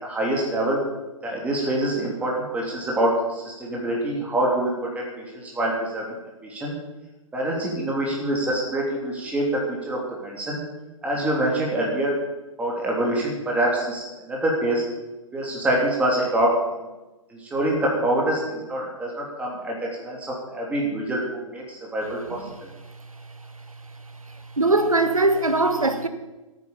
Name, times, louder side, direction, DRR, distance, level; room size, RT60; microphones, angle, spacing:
voice 1, 0.0-0.8 1.2-6.1 6.4-6.7 7.3-10.6 11.0-12.1 12.6-14.8 15.3-16.5 17.3-20.2 20.5-21.2 21.5-22.4, right 1 dB, 10° right, 3.2 m, -25 dB
voice 2, 24.6-26.1, right 2 dB, 80° right, 1.6 m, -20 dB
14.0 x 9.4 x 7.2 m
figure-of-eight pair, 120°, 17 cm